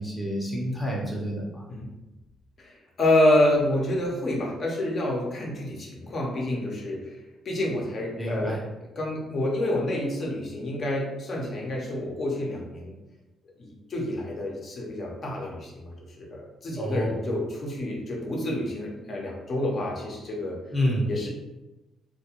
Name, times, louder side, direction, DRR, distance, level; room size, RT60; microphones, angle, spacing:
voice 1, 0.0-1.6 8.2-8.6 16.8-17.3 20.7-21.1, equal, 10° left, -3 dB, 0.6 m, -28 dB
voice 2, 2.6-7.2 7.4-8.6 9.0-12.9 13.6-20.6 21.1-21.3, left 1 dB, 50° left, -2 dB, 0.6 m, -28 dB
2.2 x 2.2 x 2.9 m, 1.0 s
cardioid pair, 90°, 0 cm